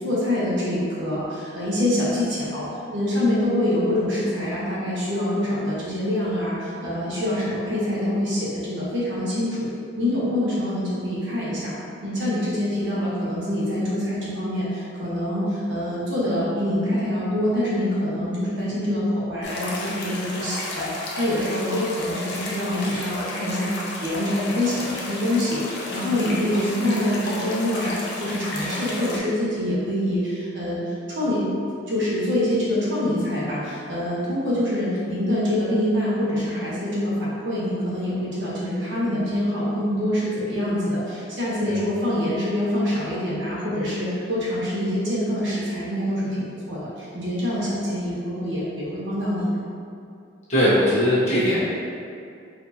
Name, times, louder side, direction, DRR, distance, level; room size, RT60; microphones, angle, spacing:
voice 1, 0.0-9.7 10.0-11.7 12.0-25.6 25.9-31.5 31.9-49.6, left 1 dB, 65° right, -8 dB, 1.1 m, -25 dB
sound 1, 19.4-29.2, left 2 dB, 60° left, 0.6 m, -32 dB
voice 2, 50.5-51.6, equal, 35° left, -10 dB, 1.1 m, -20 dB
4.2 x 2.8 x 2.8 m, 2.4 s
head